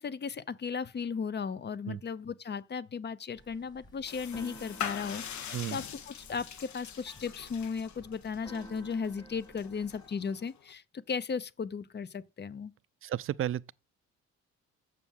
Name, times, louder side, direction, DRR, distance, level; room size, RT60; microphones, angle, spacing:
voice 1, 0.0-12.7, left 6 dB, 35° left, 0.7 m, -36 dB
Keyboard (musical), 3.4-10.1, equal, 15° left, 1.7 m, -53 dB
sound 1, 4.1-10.7, left 8 dB, 70° left, 1.3 m, -43 dB
voice 2, 13.0-13.7, right 11 dB, 45° right, 0.4 m, -33 dB
7.2 x 6.0 x 7.2 m
cardioid pair, 90°, 30 cm